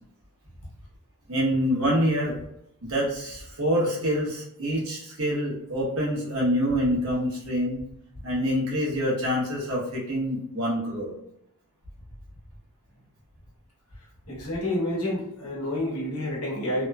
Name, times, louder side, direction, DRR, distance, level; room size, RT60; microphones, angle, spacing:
voice 1, 1.3-2.4 2.8-7.8 8.2-11.1, equal, 70° right, -5 dB, 1.0 m, -26 dB
voice 2, 14.3-16.9, left 1 dB, 85° left, -3 dB, 1.0 m, -29 dB
3.0 x 2.1 x 2.2 m, 0.79 s
head